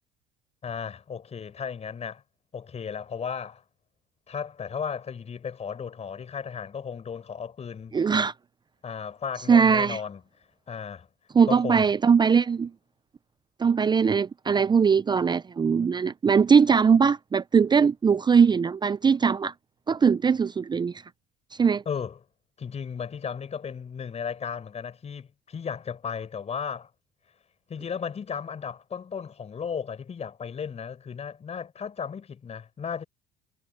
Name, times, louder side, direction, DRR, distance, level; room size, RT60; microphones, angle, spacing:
voice 1, 0.6-2.2 2.5-3.6 4.3-7.9 8.8-10.2 10.7-11.1 11.5-11.9 21.8-22.2 22.6-26.9 27.7-33.0, left 6 dB, 35° left, 4.8 m, -35 dB
voice 2, 7.9-8.3 9.5-10.0 11.3-12.7 13.6-19.5 19.9-21.0 21.6-21.8, right 6 dB, 25° right, 0.7 m, -21 dB
hypercardioid pair, 75°, 19 cm